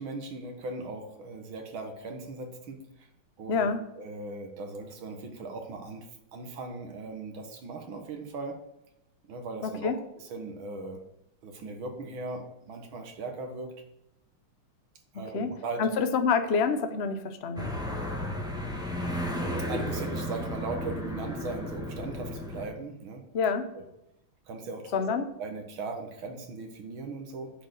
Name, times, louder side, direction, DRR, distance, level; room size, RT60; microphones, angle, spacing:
voice 1, 0.0-3.1 3.4-3.7 4.0-8.6 9.3-11.0 11.4-13.9 15.1-15.9 19.6-23.3 23.7-23.8 24.5-25.0 25.4-27.5, right 3 dB, 70° right, 5 dB, 2.2 m, -38 dB
voice 2, 3.5-3.8 9.6-10.0 15.3-15.5 15.8-17.7 23.3-23.7 24.9-25.2, left 5 dB, 65° left, 8 dB, 0.6 m, -27 dB
sound 1, 17.6-22.6, equal, ahead, 1.3 m, -33 dB
9.8 x 4.6 x 7.9 m, 0.85 s
omnidirectional pair, 2.3 m